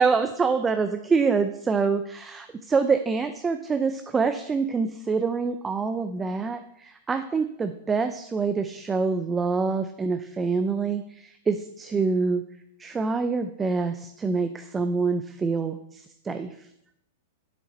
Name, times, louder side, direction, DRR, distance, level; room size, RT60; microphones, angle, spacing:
voice 1, 0.0-12.4 12.8-16.5, right 4 dB, 15° right, 8 dB, 0.4 m, -26 dB
7.4 x 7.0 x 4.2 m, 0.79 s
hypercardioid pair, 125°, 0 cm